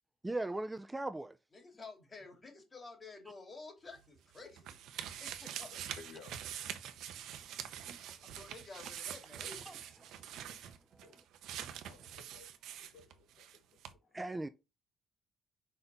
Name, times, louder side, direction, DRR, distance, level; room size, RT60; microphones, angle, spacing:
voice 1, 0.2-1.4 7.9-8.2 9.7-9.8 10.0-11.2 14.1-14.5, right 2 dB, 15° right, 0.5 m, -40 dB
voice 2, 1.5-5.8 8.2-9.7 10.5-10.7, left 3 dB, 30° left, 3.2 m, -52 dB
sound 1, 3.9-13.6 13.8-13.9, right 10 dB, 85° right, 0.8 m, -45 dB
voice 3, 5.7-6.4 8.1-8.2 11.0-11.2 11.7-14.2, left 5 dB, 85° left, 1.3 m, -58 dB
5.3 x 4.2 x 5.8 m
cardioid pair, 90°, 0 cm